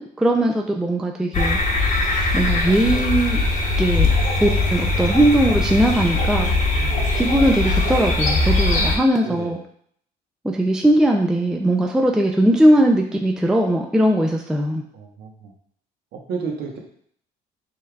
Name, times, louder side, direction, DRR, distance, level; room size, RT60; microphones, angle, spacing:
voice 1, 0.0-1.6 2.3-3.4 3.8-4.1 4.4-6.5 7.1-9.6 10.4-14.8, right 1 dB, 5° right, 1 dB, 0.4 m, -19 dB
sound 1, 1.3-9.0, left 2 dB, 45° left, 1.0 m, -20 dB
voice 2, 6.5-7.1 9.2-9.5 14.9-15.5 16.1-16.8, right 5 dB, 70° right, 0 dB, 1.0 m, -32 dB
5.4 x 3.2 x 2.3 m, 0.64 s
cardioid pair, 110°, 17 cm